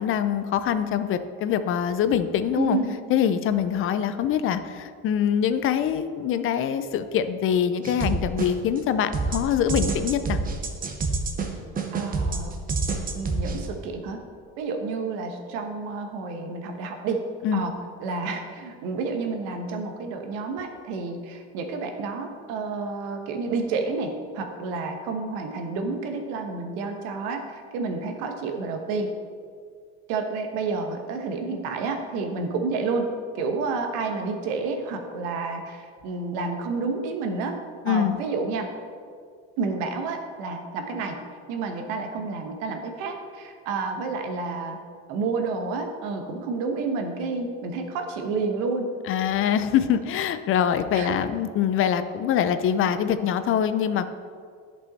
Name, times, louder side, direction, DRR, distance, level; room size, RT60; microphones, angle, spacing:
voice 1, 0.0-2.8 3.1-10.4 17.4-17.6 37.8-38.2 49.1-54.1, left 9 dB, 45° left, 11 dB, 0.5 m, -24 dB
voice 2, 2.5-3.0 11.9-12.5 13.1-14.2 14.6-17.2 17.5-17.7 18.0-29.1 30.1-33.1 33.3-37.5 37.9-38.7 39.6-41.2 41.5-44.8 45.1-48.9 50.9-51.2, right 4 dB, 85° right, 4 dB, 1.1 m, -30 dB
sound 1, 7.8-8.8 9.1-13.7, right 4 dB, 25° right, 0.9 m, -27 dB
10.5 x 5.5 x 4.1 m, 2.1 s
cardioid pair, 130°, 31 cm